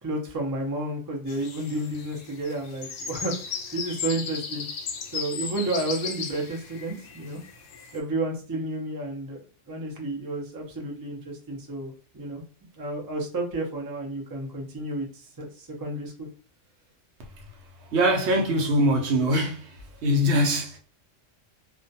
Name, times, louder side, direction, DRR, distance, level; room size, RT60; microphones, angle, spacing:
voice 1, 0.0-4.7 5.1-7.4 7.9-12.4 12.8-16.1, right 2 dB, 30° right, 0.3 m, -31 dB
sound 1, 1.3-8.0, left 6 dB, 80° left, 0.9 m, -36 dB
voice 2, 17.9-19.7 20.0-20.8, equal, 65° right, 0.8 m, -22 dB
2.4 x 2.2 x 2.6 m
omnidirectional pair, 1.3 m